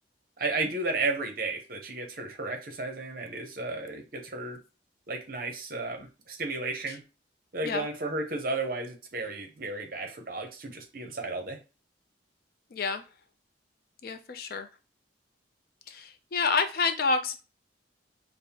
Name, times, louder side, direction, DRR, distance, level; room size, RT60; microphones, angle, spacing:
voice 1, 0.4-4.6 5.1-7.0 7.5-11.6, right 3 dB, 50° right, 4 dB, 0.7 m, -33 dB
voice 2, 12.7-13.0 14.0-14.7 15.9-17.4, left 4 dB, 50° left, 8 dB, 0.4 m, -28 dB
5.3 x 2.0 x 2.8 m, 0.31 s
head